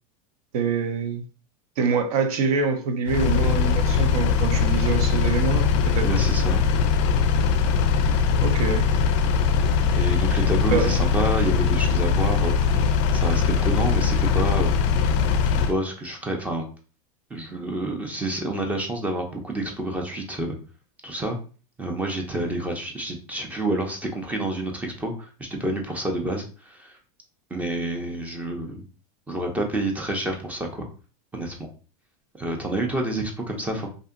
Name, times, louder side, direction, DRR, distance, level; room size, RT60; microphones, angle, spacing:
voice 1, 0.5-1.2 1.8-6.1 8.4-8.9 10.7-10.9, right 5 dB, 75° right, 0.6 m, -25 dB
Engine, 3.1-15.7, left 6 dB, 55° left, 0.4 m, -21 dB
voice 2, 6.0-6.6 9.9-14.7 15.5-16.7 17.3-20.6 21.0-21.4 21.8-27.0 27.5-28.8 29.3-30.9 31.3-31.7 32.4-33.9, right 1 dB, 10° right, 0.4 m, -28 dB
2.6 x 2.5 x 2.4 m
supercardioid pair, 145°, 19 cm